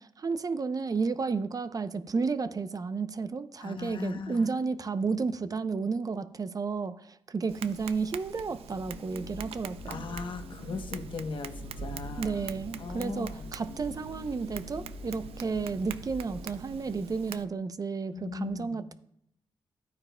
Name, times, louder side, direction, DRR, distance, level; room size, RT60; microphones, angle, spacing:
voice 1, 0.0-10.0 12.2-18.9, right 4 dB, 40° right, 11 dB, 0.6 m, -32 dB
voice 2, 3.6-4.5 9.9-12.5 12.8-13.5 18.1-18.8, left 4 dB, 60° left, 7 dB, 0.9 m, -38 dB
Tap, 7.5-17.5, right 8 dB, 90° right, 0.4 m, -44 dB
sound 1, 8.7-17.0, left 2 dB, 75° left, 1.1 m, -45 dB
12.0 x 9.2 x 2.2 m, 0.74 s
cardioid pair, 75°, 10 cm